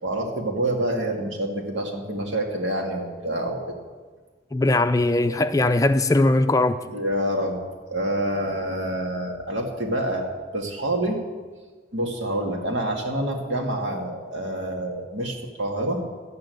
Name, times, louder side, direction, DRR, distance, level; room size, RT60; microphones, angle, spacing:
voice 1, 0.0-3.8 6.9-7.6 7.9-10.3 10.5-11.2 11.9-16.0, right 1 dB, 80° right, 2.3 m, -27 dB
voice 2, 4.5-6.8, left 2 dB, 20° left, 0.4 m, -20 dB
12.0 x 9.0 x 7.8 m
head